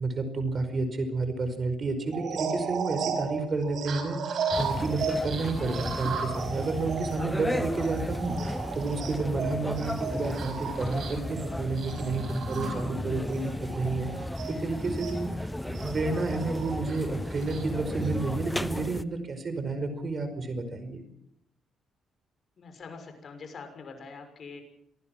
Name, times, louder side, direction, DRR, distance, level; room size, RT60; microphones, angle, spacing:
voice 1, 0.0-21.0, right 3 dB, 40° right, 10 dB, 5.0 m, -31 dB
sound 1, 2.0-15.2 15.7-18.1, right 5 dB, 65° right, 5.4 m, -35 dB
sound 2, 4.5-19.0, left 1 dB, 5° left, 1.0 m, -34 dB
voice 2, 22.6-24.6, left 4 dB, 50° left, 6 dB, 6.2 m, -44 dB
26.5 x 19.0 x 6.0 m, 0.76 s
cardioid pair, 90°, 0 cm